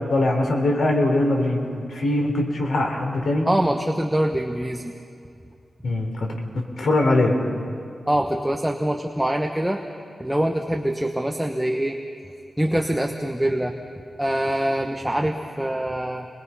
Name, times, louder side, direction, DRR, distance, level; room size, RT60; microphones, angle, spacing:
voice 1, 0.0-1.6 1.9-3.5 5.8-7.4, left 2 dB, 80° left, 2 dB, 3.3 m, -22 dB
voice 2, 3.4-5.0 8.1-9.8 10.2-12.0 12.6-13.7 14.2-16.3, right 1 dB, 5° right, 3 dB, 1.1 m, -24 dB
27.5 x 21.5 x 5.6 m, 2.6 s
wide cardioid pair, 95°, 0 cm